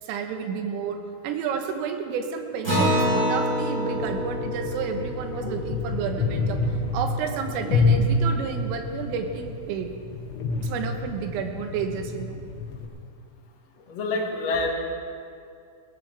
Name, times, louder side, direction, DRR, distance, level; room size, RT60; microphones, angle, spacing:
voice 1, 0.0-6.6 6.9-9.9 10.6-12.4, right 6 dB, 90° right, 5 dB, 3.8 m, -31 dB
Acoustic guitar, 2.6-7.5, equal, 20° right, 4.5 m, -27 dB
sound 1, 3.9-12.9, left 3 dB, 85° left, 4.0 m, -28 dB
voice 2, 13.8-14.7, left 3 dB, 55° left, -1 dB, 1.8 m, -29 dB
19.5 x 17.5 x 3.4 m, 2.4 s
omnidirectional pair, 5.7 m